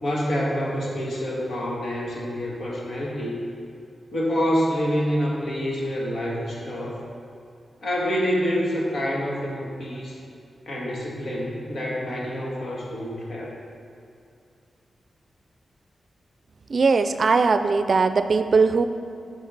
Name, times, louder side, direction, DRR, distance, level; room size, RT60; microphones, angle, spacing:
voice 1, 0.0-3.4 4.1-7.0 7.8-10.2 10.7-13.5, equal, 70° left, -3 dB, 1.7 m, -27 dB
voice 2, 16.7-18.8, right 4 dB, 60° right, 9 dB, 0.4 m, -20 dB
9.2 x 4.9 x 4.0 m, 2.6 s
cardioid pair, 65°, 0 cm